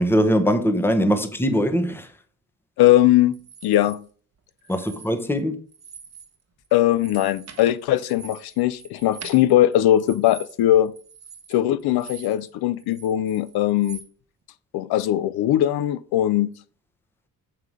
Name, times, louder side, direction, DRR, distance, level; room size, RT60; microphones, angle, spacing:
voice 1, 0.0-2.1 4.7-5.6, equal, 5° left, 1.0 m, -21 dB
voice 2, 2.8-4.1 6.7-10.9 11.5-14.0 14.7-16.5, left 13 dB, 80° left, 0.7 m, -20 dB
sound 1, 3.3-4.0 4.6-5.4 5.7-6.3 6.6-12.5 12.8-14.1, right 6 dB, 45° right, 1.2 m, -44 dB
6.7 x 5.6 x 4.9 m
cardioid pair, 100°, 37 cm